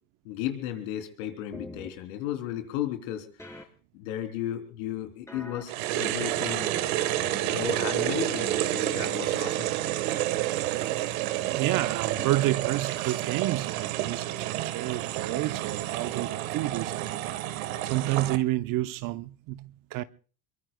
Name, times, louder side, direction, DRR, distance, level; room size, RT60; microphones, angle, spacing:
voice 1, 0.3-3.6 3.9-6.7 7.5-10.1, left 11 dB, 75° left, 3.3 m, -35 dB
sound 1, 1.5-1.9 3.4-3.6 5.3-5.6 6.2-9.0, left 1 dB, 5° left, 3.9 m, -43 dB
sound 2, 5.7-18.4, right 14 dB, 75° right, 1.4 m, -29 dB
voice 2, 11.5-17.2 17.8-20.0, right 16 dB, 50° right, 0.8 m, -30 dB
26.5 x 22.5 x 2.2 m
hypercardioid pair, 80°, 42 cm